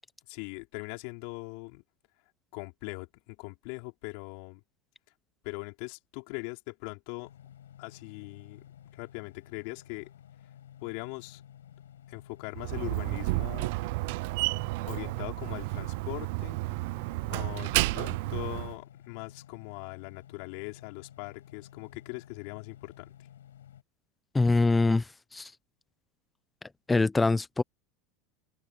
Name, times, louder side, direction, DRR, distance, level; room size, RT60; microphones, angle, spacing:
voice 1, 0.3-1.8 2.5-4.6 5.4-7.3 7.8-8.6 8.9-10.1 10.8-11.4 12.1-13.7 14.8-16.6 17.2-23.1, left 32 dB, 65° left, 4.5 m, -41 dB
sound 1, 7.2-23.8, left 10 dB, 85° left, 6.1 m, -53 dB
Slam, 12.5-18.7, right 24 dB, 65° right, 0.5 m, -31 dB
voice 2, 24.3-25.5 26.9-27.6, left 3 dB, 15° left, 1.1 m, -24 dB
open air
hypercardioid pair, 90°, 0 cm